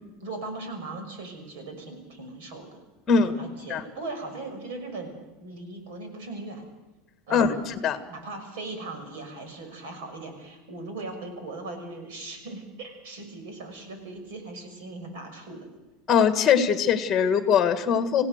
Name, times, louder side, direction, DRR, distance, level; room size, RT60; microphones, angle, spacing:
voice 1, 0.2-2.8 3.2-6.7 7.3-7.7 8.1-15.7, right 2 dB, 75° right, 6 dB, 5.9 m, -39 dB
voice 2, 7.3-8.0 16.1-18.2, left 7 dB, 25° left, 8 dB, 1.8 m, -21 dB
27.0 x 16.5 x 6.7 m, 1.1 s
supercardioid pair, 165°, 0 cm